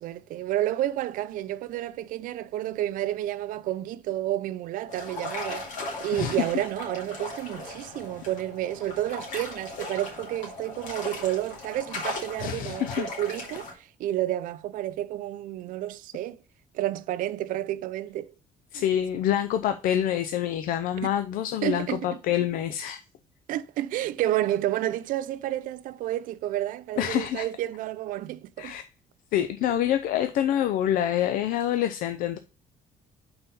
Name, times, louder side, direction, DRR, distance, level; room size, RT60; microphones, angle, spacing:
voice 1, 0.0-5.7 6.0-16.4 16.7-18.3 18.7-18.8 21.0-21.1 21.6-22.1 23.5-28.7, right 13 dB, 70° right, 0.5 m, -30 dB
sound 1, 4.9-13.7, left 2 dB, 60° left, 2.3 m, -38 dB
voice 2, 6.1-6.7 12.4-13.1 18.7-23.0 27.0-27.5 28.6-28.8 29.3-32.4, left 11 dB, 75° left, 0.5 m, -26 dB
5.6 x 4.3 x 5.3 m
cardioid pair, 175°, 14 cm